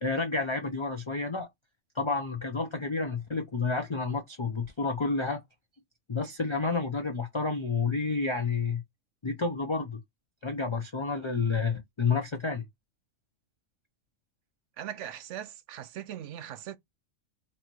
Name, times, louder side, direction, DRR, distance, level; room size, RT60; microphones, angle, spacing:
voice 1, 0.0-1.5 2.0-5.4 6.1-8.8 9.2-10.0 10.4-12.6, left 4 dB, 35° left, 0.5 m, -30 dB
voice 2, 14.8-16.8, right 10 dB, 70° right, 0.9 m, -40 dB
4.2 x 2.8 x 4.4 m
omnidirectional pair, 1.4 m